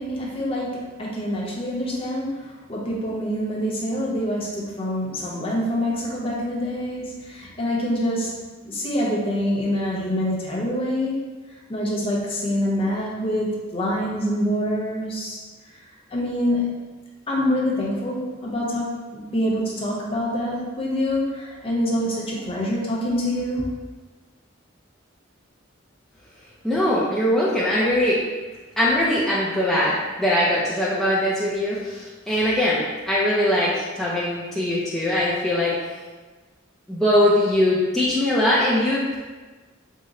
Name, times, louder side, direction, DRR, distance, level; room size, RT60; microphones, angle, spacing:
voice 1, 0.0-2.4 2.7-8.3 8.6-11.1 11.7-15.4 16.1-16.7 17.3-23.6, equal, 30° left, -4 dB, 0.7 m, -25 dB
voice 2, 26.6-28.2 28.8-35.7 36.9-39.2, left 1 dB, ahead, -9 dB, 0.4 m, -21 dB
3.7 x 2.1 x 4.0 m, 1.3 s
head